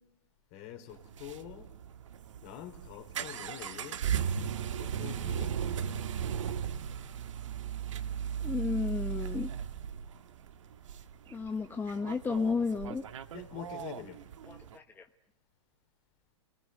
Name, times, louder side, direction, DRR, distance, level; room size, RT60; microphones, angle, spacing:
voice 1, 0.5-1.7 2.4-4.0 4.8-5.6 13.3-14.3, left 11 dB, 45° left, 4.0 m, -45 dB
sound 1, 0.9-14.8, right 8 dB, 75° right, 1.7 m, -37 dB
voice 2, 8.4-9.5 11.3-13.0 14.5-15.1, left 4 dB, 10° left, 1.3 m, -33 dB
29.0 x 20.5 x 9.4 m
hypercardioid pair, 120°, 16 cm